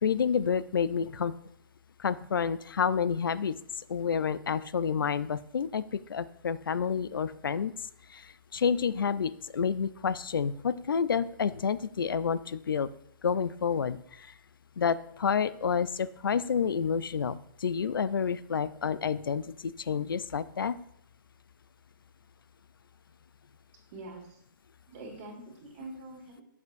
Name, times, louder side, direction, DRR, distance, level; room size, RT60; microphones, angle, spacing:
voice 1, 0.0-1.3 2.0-7.7 8.1-12.9 13.2-14.3 14.8-20.7, left 6 dB, 80° left, 16 dB, 0.4 m, -29 dB
voice 2, 23.9-24.4 24.9-26.4, right 2 dB, 40° right, 0 dB, 1.9 m, -44 dB
8.3 x 6.5 x 2.6 m, 0.72 s
hypercardioid pair, 140°, 11 cm